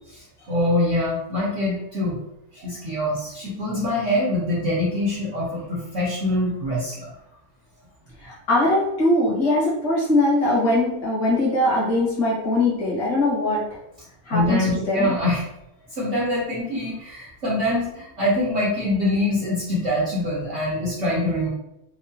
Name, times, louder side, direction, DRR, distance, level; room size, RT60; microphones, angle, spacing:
voice 1, 0.1-2.2 2.5-7.1 14.3-15.4 15.9-21.5, left 1 dB, 55° right, -7 dB, 0.8 m, -24 dB
voice 2, 8.2-13.6 14.3-15.1, left 1 dB, 60° left, -6 dB, 1.9 m, -21 dB
4.6 x 2.1 x 2.6 m, 0.84 s
omnidirectional pair, 2.2 m